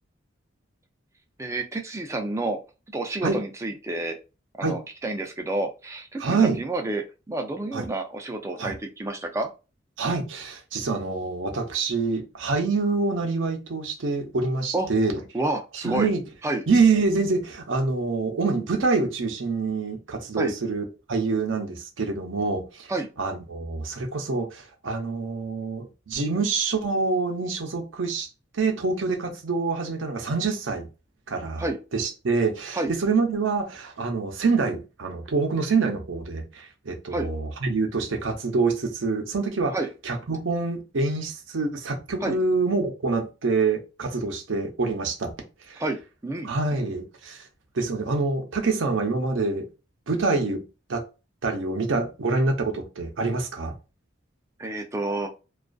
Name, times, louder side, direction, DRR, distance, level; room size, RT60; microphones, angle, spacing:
voice 1, 1.4-2.6 2.9-4.2 4.6-9.5 14.7-14.9 15.3-16.1 16.4-16.6 20.4-20.5 22.9-23.1 31.6-31.8 32.7-32.9 37.1-37.3 39.7-39.9 42.2-42.4 45.8-46.5 54.6-55.3, right 2 dB, 15° right, 0.4 m, -29 dB
voice 2, 6.2-6.6 7.7-7.8 8.6-8.7 10.0-15.2 15.7-16.2 16.7-22.9 23.2-28.3 28.5-30.9 31.3-31.7 31.9-39.8 40.0-45.3 45.7-45.8 46.4-47.4 47.7-49.7 50.1-50.6 50.9-51.0 51.4-53.7, right 4 dB, 75° right, 0.6 m, -26 dB
2.5 x 2.3 x 2.2 m
head